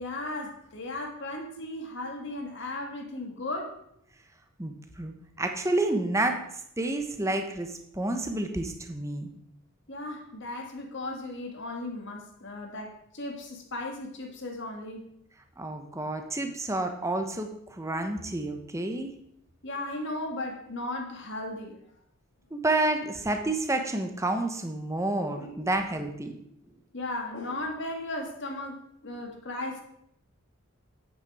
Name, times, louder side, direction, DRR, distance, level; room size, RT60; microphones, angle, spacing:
voice 1, 0.0-3.7 9.9-15.1 19.6-21.8 25.4-25.5 26.9-29.8, left 2 dB, 55° left, 2 dB, 1.8 m, -36 dB
voice 2, 4.6-6.4 6.8-9.3 15.6-19.1 22.5-26.3, right 2 dB, 15° right, 5 dB, 1.0 m, -29 dB
8.9 x 8.9 x 4.8 m, 0.75 s
head